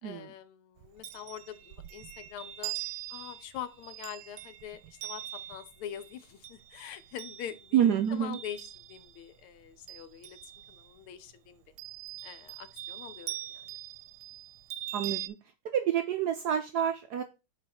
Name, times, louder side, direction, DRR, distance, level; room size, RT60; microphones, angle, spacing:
voice 1, 0.0-2.7 3.1-5.2 5.5-11.6 12.2-13.7, left 10 dB, 90° left, 1.7 m, -44 dB
Chime, 0.8-9.3 9.6-11.0 11.8-15.3, right 14 dB, 90° right, 1.5 m, -43 dB
voice 2, 7.7-8.4 14.9-15.4 15.7-17.2, right 9 dB, 75° right, 0.9 m, -28 dB
4.7 x 4.6 x 5.8 m
omnidirectional pair, 2.3 m